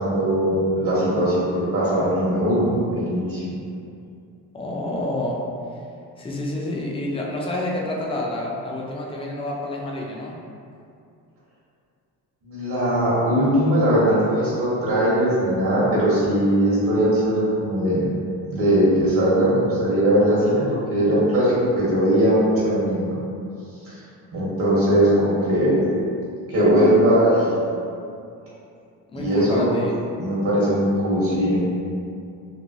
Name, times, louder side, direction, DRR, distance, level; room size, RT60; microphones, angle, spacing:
voice 1, 0.0-1.5 1.7-3.4 12.4-18.1 18.5-20.6 20.9-23.2 23.8-24.0 24.3-25.8 26.5-27.7 29.1-29.7 30.2-31.7, right 1 dB, 55° right, -8 dB, 1.0 m, -20 dB
voice 2, 4.5-5.4 6.2-10.4 29.1-29.9, left 1 dB, 15° left, -3 dB, 0.4 m, -28 dB
3.0 x 2.1 x 2.6 m, 2.5 s
cardioid pair, 90°, 41 cm